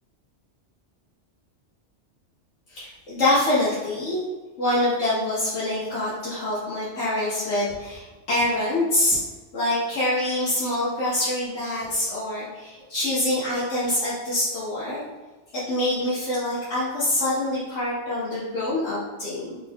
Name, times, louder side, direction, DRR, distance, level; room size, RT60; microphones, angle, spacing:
voice 1, 2.7-4.2 4.6-9.2 9.5-15.0 15.5-19.6, left 1 dB, 85° left, -10 dB, 1.3 m, -25 dB
4.0 x 3.2 x 2.9 m, 1.2 s
omnidirectional pair, 1.2 m